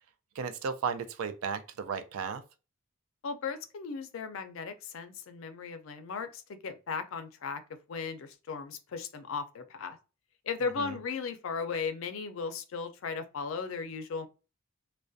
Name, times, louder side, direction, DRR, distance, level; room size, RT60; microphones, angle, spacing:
voice 1, 0.4-2.4 10.8-11.0, right 6 dB, 80° right, 0.4 m, -34 dB
voice 2, 3.2-7.6 7.9-10.0 10.5-14.3, left 5 dB, 65° left, 0.4 m, -36 dB
2.3 x 2.1 x 2.5 m
head